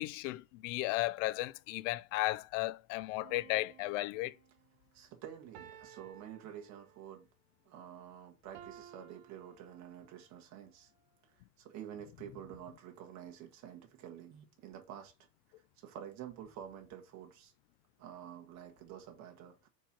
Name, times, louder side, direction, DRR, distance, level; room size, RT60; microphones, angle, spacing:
voice 1, 0.0-4.3, left 18 dB, 65° left, 0.5 m, -35 dB
sound 1, 3.2-4.6 5.5-7.2 8.5-10.3 10.9-11.0, right 10 dB, 65° right, 1.2 m, -56 dB
voice 2, 4.9-7.3 7.6-10.9 11.6-15.1 15.8-17.5 18.0-19.7, right 10 dB, 40° right, 1.5 m, -49 dB
4.6 x 4.4 x 5.9 m
supercardioid pair, 155°, 41 cm